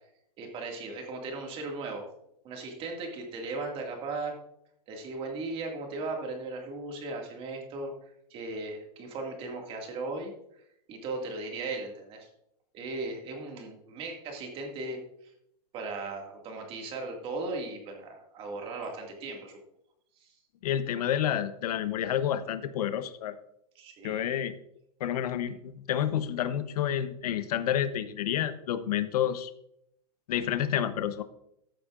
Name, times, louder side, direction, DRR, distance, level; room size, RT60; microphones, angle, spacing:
voice 1, 0.4-2.1 2.4-4.4 4.9-7.9 8.3-10.6 10.9-12.3 12.7-15.3 15.7-19.6 20.2-20.3 23.8-24.2, right 3 dB, 30° right, 2 dB, 2.2 m, -37 dB
voice 2, 20.6-23.4 24.0-24.5 25.0-29.5 30.3-31.2, left 10 dB, 80° left, 12 dB, 0.9 m, -29 dB
14.5 x 8.4 x 2.5 m, 0.76 s
supercardioid pair, 160°, 20 cm